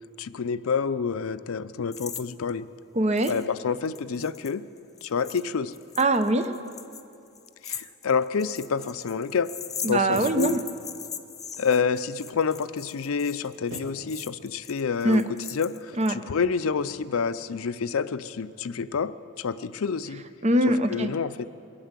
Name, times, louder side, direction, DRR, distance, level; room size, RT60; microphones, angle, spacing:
voice 1, 0.2-2.6 3.3-4.6 5.0-5.7 7.6-9.5 9.8-10.6 11.6-15.2 15.5-19.1 19.4-20.2 20.9-21.5, left 5 dB, 70° left, 15 dB, 0.5 m, -28 dB
sound 1, 1.9-2.2 2.5-2.6 3.2-3.5 3.8-16.1, left 7 dB, 15° left, 0.3 m, -40 dB
voice 2, 2.9-3.3 6.0-6.5 9.8-10.6 15.0-15.2 16.0-16.1 20.4-21.1, right 1 dB, 30° right, 9 dB, 0.7 m, -22 dB
sound 2, 8.1-9.7 10.1-10.6 10.8-12.1 12.4-12.8 13.7-13.8, right 2 dB, 55° right, 1.9 m, -46 dB
22.0 x 8.8 x 7.4 m, 2.6 s
head